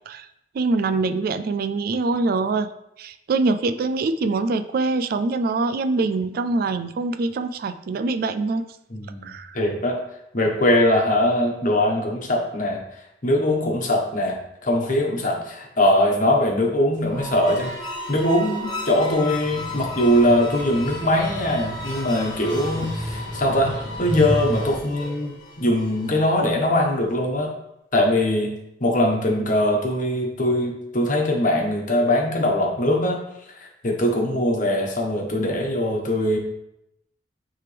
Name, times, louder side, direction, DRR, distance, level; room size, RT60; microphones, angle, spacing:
voice 1, 0.5-2.7 3.0-8.6 9.2-9.6, right 3 dB, 55° right, 10 dB, 0.3 m, -24 dB
voice 2, 8.9-10.0 10.3-12.8 13.2-27.5 27.9-28.5 28.8-33.2 33.8-36.4, left 1 dB, 45° left, 0 dB, 1.2 m, -21 dB
sound 1, 16.9-26.3, left 1 dB, 25° left, 1.2 m, -35 dB
sound 2, 19.4-24.8, equal, 35° right, 1.9 m, -32 dB
9.7 x 3.4 x 3.4 m, 0.83 s
head